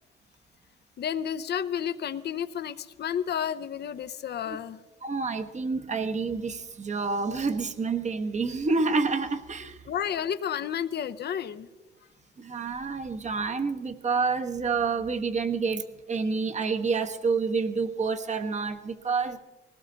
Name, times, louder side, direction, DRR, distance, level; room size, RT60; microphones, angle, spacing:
voice 1, 1.0-4.8 9.9-11.7, left 8 dB, 55° left, 12 dB, 0.8 m, -31 dB
voice 2, 5.0-9.8 12.4-19.4, right 4 dB, 35° right, 7 dB, 1.3 m, -28 dB
19.5 x 17.5 x 4.0 m, 1.2 s
cardioid pair, 90°, 20 cm